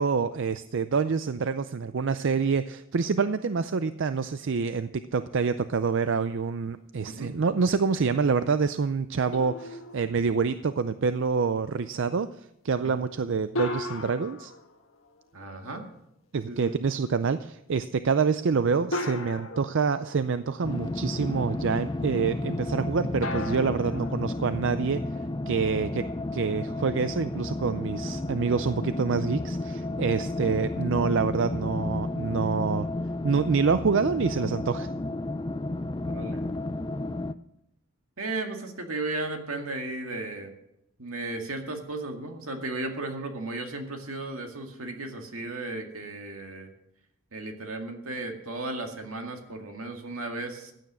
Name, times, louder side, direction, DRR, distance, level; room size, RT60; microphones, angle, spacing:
voice 1, 0.0-14.5 16.3-25.0 25.5-32.9 33.2-34.9, right 5 dB, 60° right, 12 dB, 0.4 m, -27 dB
sound 1, 9.3-10.8 13.5-15.6 17.2-17.3 18.9-20.8 23.2-25.2, left 1 dB, 70° left, 1.7 m, -37 dB
voice 2, 15.3-15.8 16.5-16.8 36.0-36.4 38.2-40.5 41.0-46.7 47.3-50.7, right 2 dB, 80° right, 4 dB, 2.0 m, -35 dB
sound 2, 20.6-37.3, left 2 dB, 20° left, 0.4 m, -32 dB
15.0 x 9.2 x 6.2 m, 0.81 s
head